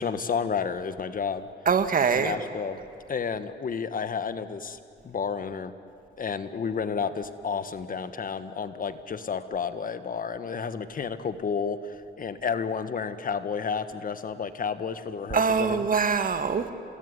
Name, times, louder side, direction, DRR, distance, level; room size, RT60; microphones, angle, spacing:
voice 1, 0.0-1.5 2.1-2.8 3.1-4.8 5.0-5.7 6.2-11.8 12.2-15.8, left 6 dB, 45° left, 12 dB, 1.5 m, -31 dB
voice 2, 1.7-2.4 15.3-16.7, right 5 dB, 45° right, 9 dB, 2.0 m, -23 dB
28.5 x 20.0 x 9.7 m, 2.8 s
cardioid pair, 90°, 20 cm